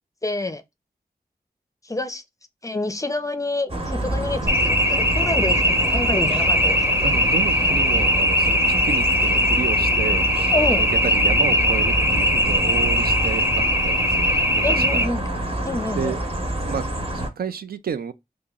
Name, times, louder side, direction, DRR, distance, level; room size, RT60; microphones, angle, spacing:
voice 1, 0.2-0.6 1.8-2.2 2.6-7.1 10.5-10.8 14.6-15.2 15.6-16.2, left 2 dB, 20° left, 0.5 m, -27 dB
sound 1, 3.7-17.3, right 1 dB, 40° right, 0.9 m, -27 dB
sound 2, 4.5-15.1, equal, 15° right, 0.7 m, -20 dB
voice 2, 7.0-10.3 10.5-15.1 15.9-16.2 16.6-16.9 17.1-18.1, right 7 dB, 80° right, 0.4 m, -31 dB
2.9 x 2.5 x 3.6 m
wide cardioid pair, 85°, 15 cm